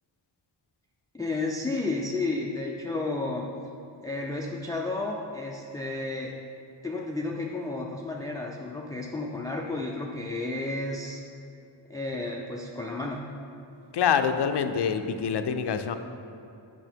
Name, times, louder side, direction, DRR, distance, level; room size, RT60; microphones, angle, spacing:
voice 1, 1.1-3.5 4.0-6.3 6.8-11.2 11.9-13.2, left 2 dB, 10° left, -1 dB, 0.4 m, -32 dB
voice 2, 13.9-15.9, left 7 dB, 60° left, 8 dB, 0.5 m, -25 dB
8.9 x 5.8 x 4.5 m, 2.6 s
wide cardioid pair, 170°, 46 cm